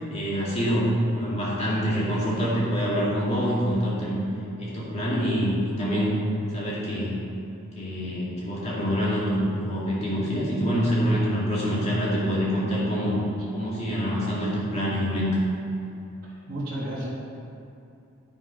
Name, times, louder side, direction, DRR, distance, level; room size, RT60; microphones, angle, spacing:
voice 1, 0.1-4.2 4.6-6.1 6.5-7.2 7.7-13.2 13.5-15.4, equal, 30° left, -7 dB, 2.2 m, -25 dB
voice 2, 16.2-17.1, right 1 dB, 40° right, -10 dB, 1.8 m, -33 dB
9.5 x 5.8 x 5.2 m, 2.7 s
head